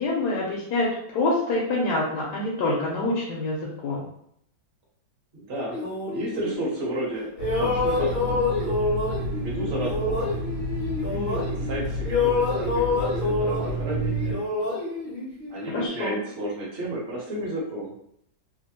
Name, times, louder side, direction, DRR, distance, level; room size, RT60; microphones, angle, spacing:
voice 1, 0.0-4.1 15.7-16.2, left 2 dB, 70° left, -4 dB, 1.2 m, -26 dB
voice 2, 5.3-5.8 6.0-7.3 7.5-8.4 9.4-10.3 11.0-14.4 15.5-17.9, right 1 dB, 45° right, -4 dB, 1.0 m, -32 dB
sound 1, 5.7-7.1 7.4-11.8 12.0-15.9, left 3 dB, 45° left, 0.6 m, -27 dB
sound 2, 7.4-14.3, right 1 dB, 70° right, 1.2 m, -31 dB
3.2 x 2.1 x 2.8 m, 0.71 s
omnidirectional pair, 1.9 m